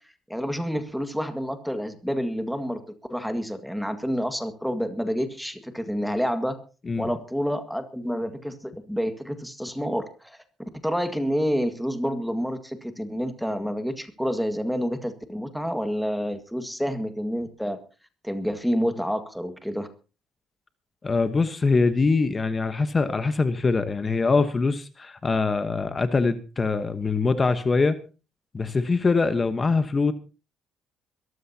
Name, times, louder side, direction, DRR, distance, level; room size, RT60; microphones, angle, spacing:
voice 1, 0.3-2.8 3.1-6.6 7.0-17.8 18.2-19.9, equal, ahead, 8 dB, 1.9 m, -28 dB
voice 2, 21.0-28.0 28.5-30.1, left 4 dB, 25° left, 10 dB, 1.1 m, -23 dB
23.0 x 14.0 x 2.9 m, 0.34 s
cardioid pair, 105°, 0 cm